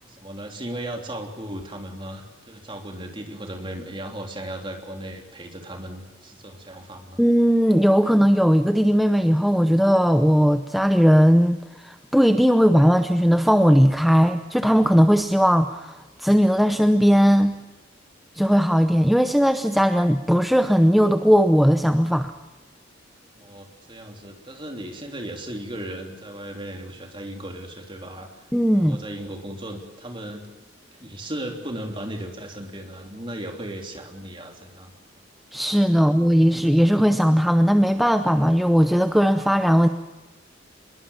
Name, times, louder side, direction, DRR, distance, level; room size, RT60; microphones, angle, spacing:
voice 1, 0.0-7.2 23.4-28.5 28.8-30.5 30.9-34.9 35.9-36.1, right 1 dB, 25° right, 3 dB, 3.3 m, -36 dB
voice 2, 7.2-17.6 18.4-22.3 28.5-29.0 35.5-39.9, equal, ahead, 8 dB, 0.7 m, -18 dB
24.5 x 22.0 x 7.2 m, 1.2 s
head